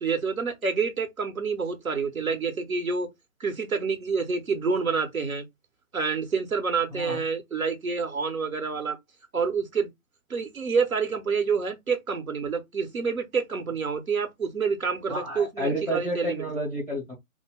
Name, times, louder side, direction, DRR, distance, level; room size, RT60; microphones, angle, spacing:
voice 1, 0.0-3.1 3.4-5.4 5.9-9.0 9.3-9.9 10.3-16.4, right 5 dB, 75° right, 1.1 m, -28 dB
voice 2, 6.9-7.2 15.1-17.1, equal, 5° right, 0.7 m, -30 dB
2.6 x 2.2 x 3.3 m
figure-of-eight pair, 145°, 42 cm